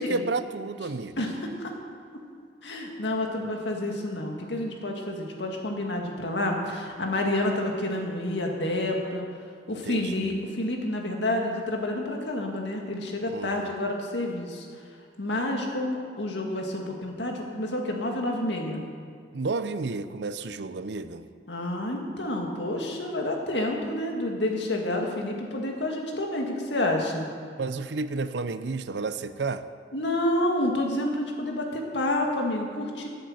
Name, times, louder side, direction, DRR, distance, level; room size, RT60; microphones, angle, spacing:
voice 1, 0.0-1.2 9.8-10.3 13.3-13.7 19.3-21.3 27.6-29.6, right 3 dB, 75° right, 12 dB, 0.6 m, -31 dB
voice 2, 2.6-9.2 9.7-14.7 15.2-18.8 21.5-27.3 29.9-33.1, left 1 dB, 80° left, 1 dB, 2.0 m, -29 dB
11.5 x 8.0 x 7.8 m, 2.2 s
head